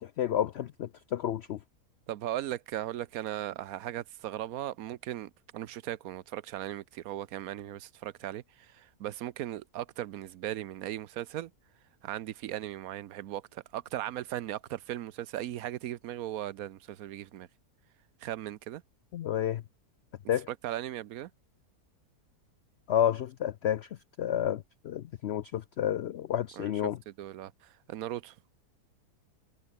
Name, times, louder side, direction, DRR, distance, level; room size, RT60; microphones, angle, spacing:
voice 1, 0.0-1.6 19.1-19.6 20.3-20.5 22.9-23.9 24.2-27.0, left 10 dB, 80° left, 0.5 m, -30 dB
voice 2, 2.1-11.5 12.0-17.5 18.2-18.8 20.5-21.3 26.6-26.7 27.1-28.4, right 13 dB, 70° right, 1.1 m, -38 dB
omnidirectional pair, 1.7 m